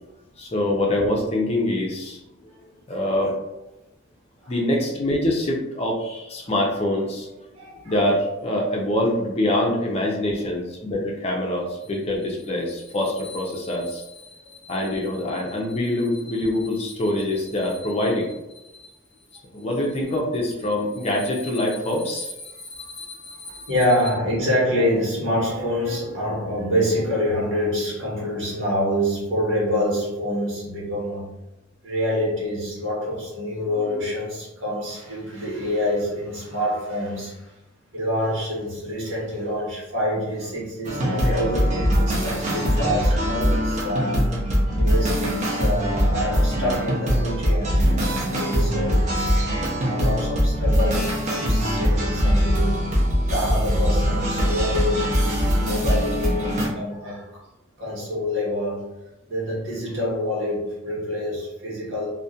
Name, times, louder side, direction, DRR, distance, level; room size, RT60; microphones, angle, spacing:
voice 1, 0.4-2.2 2.6-3.3 4.5-7.3 7.9-14.3 14.6-18.9 19.5-23.7, left 1 dB, 30° left, -1 dB, 0.4 m, -25 dB
voice 2, 7.5-8.0 14.4-14.5 14.8-14.9 23.7-31.4 31.8-37.5 37.9-44.3 44.8-52.9 53.2-57.4 57.8-58.9 59.3-62.1, equal, 70° right, -5 dB, 1.0 m, -26 dB
sound 1, 40.8-56.7, equal, 35° right, 0.4 m, -22 dB
2.3 x 2.1 x 2.6 m, 0.95 s
head